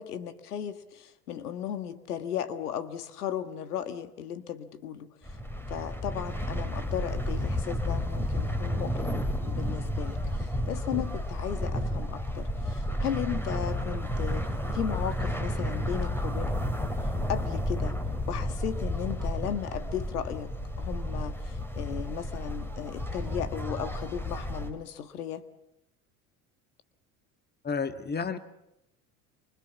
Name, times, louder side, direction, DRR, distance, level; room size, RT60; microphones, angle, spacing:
voice 1, 0.0-5.1 5.7-14.5 14.7-16.8 17.3-18.0 18.3-20.5 20.8-25.5, left 9 dB, 85° left, 10 dB, 1.8 m, -36 dB
sound 1, 5.2-24.7, left 1 dB, 5° left, 4.1 m, -32 dB
voice 2, 27.6-28.4, left 5 dB, 20° left, 10 dB, 1.8 m, -31 dB
28.5 x 24.5 x 7.3 m, 0.89 s
hypercardioid pair, 75°, 45 cm